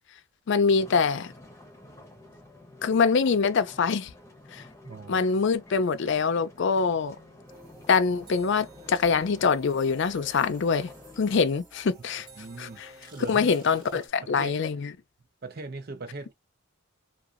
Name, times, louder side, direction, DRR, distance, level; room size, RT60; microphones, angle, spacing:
voice 1, 0.5-1.3 2.8-4.1 4.5-4.6 5.1-7.2 7.9-10.9 11.2-12.3 12.6-12.9 13.3-14.9, left 5 dB, 55° left, 0.4 m, -24 dB
sound 1, 0.7-11.4, left 1 dB, 15° left, 0.7 m, -50 dB
voice 2, 4.8-5.3 12.4-12.8 13.1-13.5 13.9-14.5 15.4-16.3, right 3 dB, 45° right, 0.6 m, -40 dB
sound 2, 7.5-14.1, right 1 dB, 20° right, 1.5 m, -51 dB
2.7 x 2.3 x 2.4 m
head